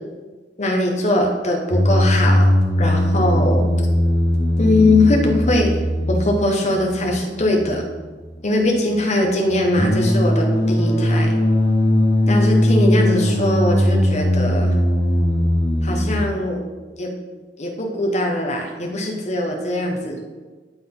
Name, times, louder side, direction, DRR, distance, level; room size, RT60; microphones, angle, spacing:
voice 1, 0.6-2.5 2.8-3.7 4.6-5.8 6.1-7.8 8.4-11.4 12.3-14.8 15.8-16.6 17.0-17.1 17.6-20.2, left 1 dB, 40° left, 1 dB, 1.2 m, -21 dB
sound 1, 1.7-16.2, left 1 dB, 80° left, 1.8 m, -19 dB
11.0 x 3.9 x 3.9 m, 1.4 s
head